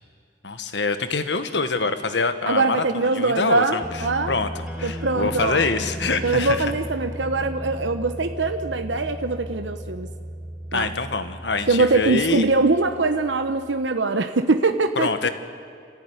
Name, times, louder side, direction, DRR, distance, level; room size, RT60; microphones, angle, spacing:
voice 1, 0.4-3.8 4.3-4.5 4.8-6.7 10.7-12.5 15.0-15.3, left 3 dB, 75° left, 9 dB, 1.5 m, -25 dB
voice 2, 2.5-4.3 4.8-5.7 6.2-10.1 10.7-10.9 11.7-15.3, right 3 dB, 85° right, 8 dB, 1.0 m, -22 dB
sound 1, 3.8-13.9, equal, 5° right, 4.8 m, -35 dB
27.0 x 15.0 x 9.6 m, 2.4 s
head